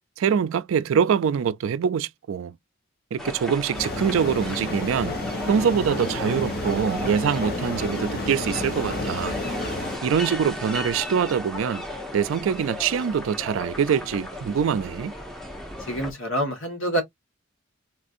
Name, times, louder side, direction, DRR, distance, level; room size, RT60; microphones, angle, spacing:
voice 1, 0.2-2.6 3.1-5.2 5.5-9.4 10.0-11.8 12.1-15.1, right 7 dB, 75° right, 0.3 m, -24 dB
sound 1, 3.2-16.1, left 1 dB, ahead, 0.7 m, -35 dB
sound 2, 3.7-10.0, left 2 dB, 50° left, 1.1 m, -31 dB
voice 2, 15.8-17.0, equal, 75° left, 1.5 m, -26 dB
4.2 x 2.5 x 2.5 m
head